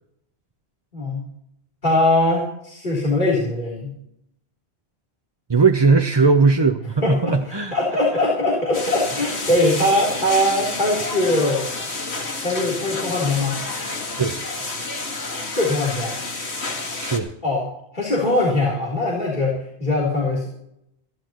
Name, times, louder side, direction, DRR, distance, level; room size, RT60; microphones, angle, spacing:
voice 1, 0.9-1.3 1.8-3.9 7.0-11.6 12.4-13.6 15.5-16.2 17.4-20.5, left 1 dB, 50° left, -3 dB, 3.7 m, -21 dB
voice 2, 5.5-7.8 14.2-14.9 16.9-17.3, right 4 dB, 30° right, 4 dB, 0.7 m, -19 dB
sound 1, 8.7-17.2, left 3 dB, 75° left, 2.3 m, -29 dB
26.5 x 11.0 x 3.0 m, 0.76 s
omnidirectional pair, 1.1 m